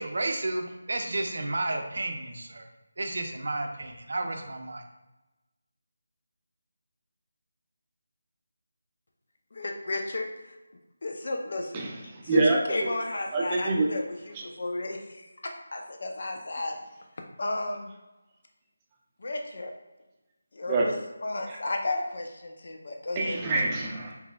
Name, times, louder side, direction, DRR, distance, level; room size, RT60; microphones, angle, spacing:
voice 1, 0.0-2.6 3.0-4.8, right 2 dB, 65° right, 4 dB, 0.6 m, -32 dB
voice 2, 9.5-10.6 11.0-11.9 12.2-16.8 17.4-17.9 19.2-19.7 20.5-20.9 21.2-23.5, left 2 dB, 60° left, 3 dB, 0.6 m, -33 dB
voice 3, 11.7-12.9 13.3-13.9 14.3-14.4 20.7-20.8 21.5-21.6 23.2-24.1, right 3 dB, 20° right, -2 dB, 0.5 m, -26 dB
4.8 x 3.4 x 2.3 m, 1.1 s
figure-of-eight pair, 165°, 0 cm